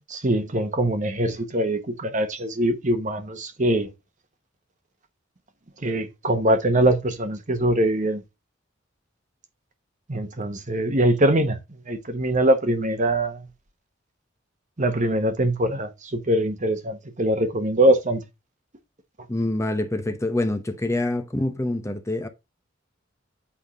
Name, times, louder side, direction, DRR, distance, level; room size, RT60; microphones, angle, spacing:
voice 1, 0.1-3.9 5.8-8.2 10.1-11.6 11.9-13.5 14.8-18.2, right 1 dB, 40° right, 1.2 m, -22 dB
voice 2, 19.3-22.3, left 1 dB, 15° left, 0.8 m, -26 dB
8.6 x 3.7 x 5.0 m
head